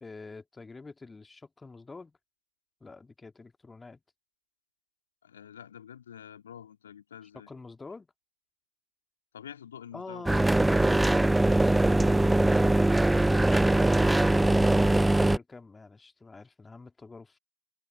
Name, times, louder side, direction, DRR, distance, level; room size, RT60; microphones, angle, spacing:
voice 1, 0.0-2.2 2.8-4.0 7.3-8.1 9.9-17.4, left 3 dB, 10° left, 2.1 m, -46 dB
voice 2, 5.2-7.5 9.3-10.6, left 9 dB, 65° left, 2.3 m, -47 dB
sound 1, 10.3-15.4, right 2 dB, 5° right, 0.3 m, -22 dB
figure-of-eight pair, 90°, 0 cm